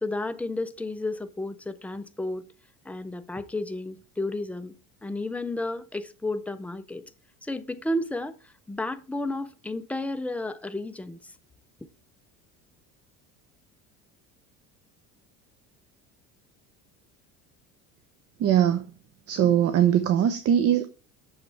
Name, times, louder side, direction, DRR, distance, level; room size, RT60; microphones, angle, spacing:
voice 1, 0.0-2.5 2.8-4.7 5.0-7.0 7.4-8.4 8.7-11.2, left 2 dB, 5° left, 0.5 m, -32 dB
voice 2, 18.4-18.9 19.3-20.9, right 10 dB, 45° right, 0.8 m, -21 dB
8.7 x 6.8 x 3.2 m
cardioid pair, 135°, 34 cm